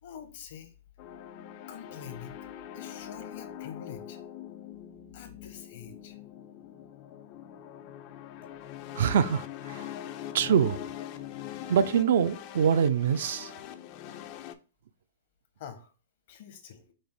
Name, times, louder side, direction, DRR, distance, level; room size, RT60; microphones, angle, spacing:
voice 1, 0.0-0.7 1.7-2.4 2.7-4.2 5.1-6.2 15.6-15.9 16.3-16.9, left 8 dB, 55° left, 0.8 m, -45 dB
sound 1, 1.0-14.5, left 11 dB, 40° left, 0.3 m, -43 dB
voice 2, 9.0-9.9 10.3-10.8 11.7-13.5, right 8 dB, 65° right, 0.3 m, -24 dB
5.1 x 2.0 x 3.5 m
hypercardioid pair, 135°, 0 cm